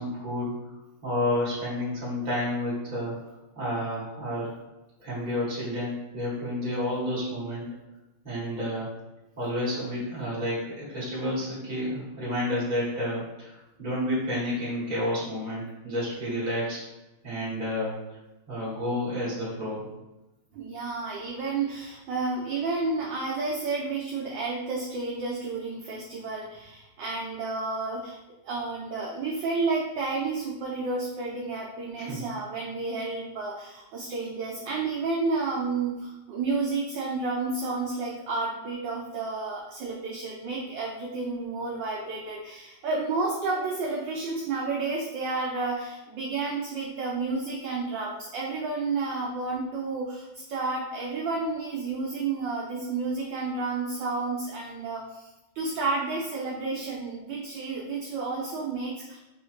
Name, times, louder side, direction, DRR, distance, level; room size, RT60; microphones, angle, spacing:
voice 1, 0.0-3.1 3.5-4.5 5.0-7.6 8.2-8.9 9.4-16.8 17.2-18.0 18.5-19.9 32.0-32.2, left 1 dB, 25° right, -6 dB, 1.4 m, -30 dB
voice 2, 20.5-28.2 28.4-55.3 55.5-59.2, right 3 dB, 75° right, -3 dB, 1.1 m, -31 dB
4.8 x 2.3 x 3.1 m, 1.0 s
omnidirectional pair, 2.4 m